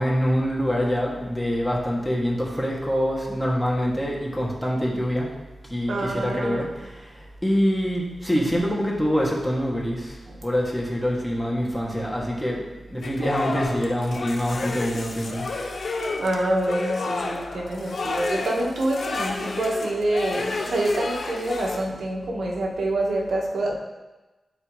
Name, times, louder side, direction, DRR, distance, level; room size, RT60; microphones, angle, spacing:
voice 1, 0.0-5.3 5.7-12.6 12.9-15.5, equal, 5° left, -4 dB, 2.3 m, -25 dB
voice 2, 5.9-6.7 10.3-10.4 16.2-23.7, right 1 dB, 75° right, -1 dB, 1.5 m, -26 dB
sound 1, 13.0-21.8, left 3 dB, 70° left, 0.9 m, -31 dB
12.5 x 4.3 x 3.2 m, 1.1 s
cardioid pair, 55°, 0 cm